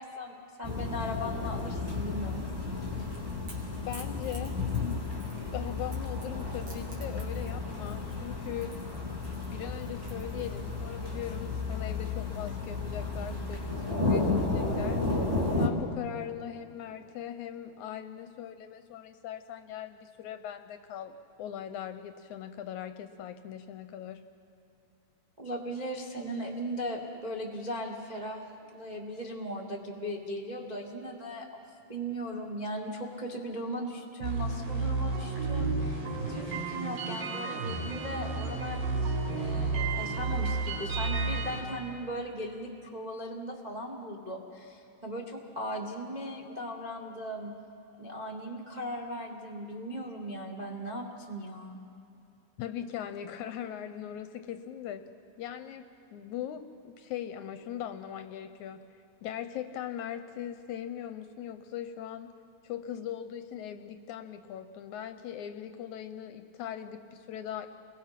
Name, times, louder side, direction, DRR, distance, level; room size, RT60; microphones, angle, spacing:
voice 1, 0.0-2.4 25.4-28.5 28.7-31.6 31.9-36.0 36.3-47.5 48.0-51.8, equal, 70° right, 0 dB, 0.4 m, -38 dB
sound 1, 0.6-15.7, left 3 dB, 5° right, 2.5 m, -33 dB
Crackle / Crack, 2.8-10.9, right 3 dB, 45° right, 3.4 m, -53 dB
voice 2, 3.8-4.6 5.3-8.7 9.4-15.0 15.6-24.3 52.6-55.1 55.4-55.8 56.1-62.3 62.6-67.7, left 10 dB, 75° left, 9 dB, 1.9 m, -40 dB
sound 2, 34.2-41.6, right 3 dB, 90° right, 7.1 m, -31 dB
29.5 x 22.0 x 5.9 m, 2.8 s
omnidirectional pair, 3.9 m